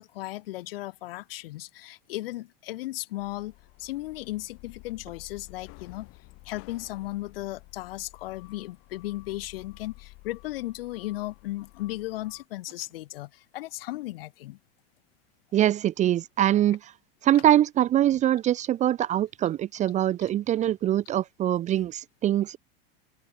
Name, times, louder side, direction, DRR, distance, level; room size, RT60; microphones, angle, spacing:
voice 1, 0.0-3.5 3.8-6.1 6.4-14.6, left 17 dB, 75° left, 4.2 m, -36 dB
sound 1, 3.2-12.5, left 25 dB, 50° left, 2.9 m, -51 dB
voice 2, 15.5-16.8 17.2-22.6, right 12 dB, 25° right, 0.6 m, -23 dB
open air
supercardioid pair, 140°, 29 cm